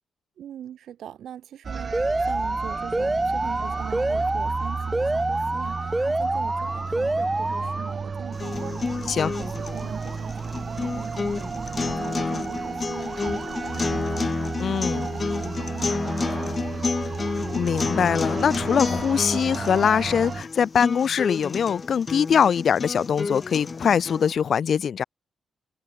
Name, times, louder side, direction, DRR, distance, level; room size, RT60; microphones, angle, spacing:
voice 1, 0.4-16.8, right 10 dB, 85° right, 6.1 m, -42 dB
sound 1, 1.6-20.4, right 5 dB, 45° right, 7.7 m, -32 dB
Alarm, 1.9-7.9, right 2 dB, 15° right, 2.9 m, -27 dB
sound 2, 8.3-24.3, left 4 dB, 35° left, 4.8 m, -30 dB
voice 2, 14.6-15.1 17.5-25.0, left 7 dB, 65° left, 0.5 m, -22 dB
cardioid pair, 90°, 0 cm